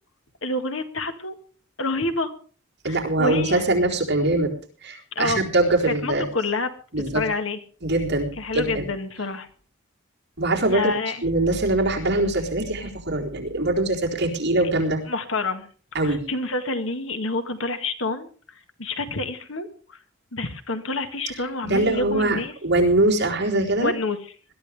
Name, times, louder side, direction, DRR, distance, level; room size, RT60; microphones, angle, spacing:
voice 1, 0.4-1.3 1.8-2.3 2.9-3.7 5.2-5.4 5.9-6.7 7.1-7.6 8.4-9.5 10.7-11.2 15.1-15.7 16.0-18.3 18.8-20.0 20.3-22.5 23.8-24.3, left 2 dB, 70° left, 8 dB, 1.8 m, -28 dB
voice 2, 2.8-4.5 4.8-6.2 6.9-7.2 7.8-8.8 10.4-10.9 11.2-15.0 15.9-16.2 21.7-23.9, right 2 dB, 55° right, -1 dB, 4.0 m, -22 dB
20.5 x 13.0 x 3.5 m, 0.40 s
head